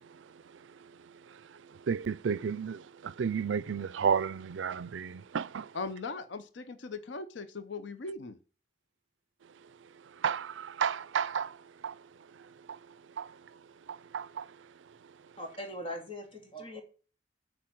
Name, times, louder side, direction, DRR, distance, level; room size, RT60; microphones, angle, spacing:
voice 1, 1.9-5.7 10.2-11.6 11.8-12.0 12.7-12.8 13.2-13.3 13.9-14.5, right 6 dB, 85° right, 0.4 m, -32 dB
voice 2, 5.7-8.4, left 3 dB, 70° left, 0.7 m, -39 dB
voice 3, 15.4-16.8, equal, 30° left, 2.8 m, -40 dB
8.8 x 4.8 x 7.6 m
head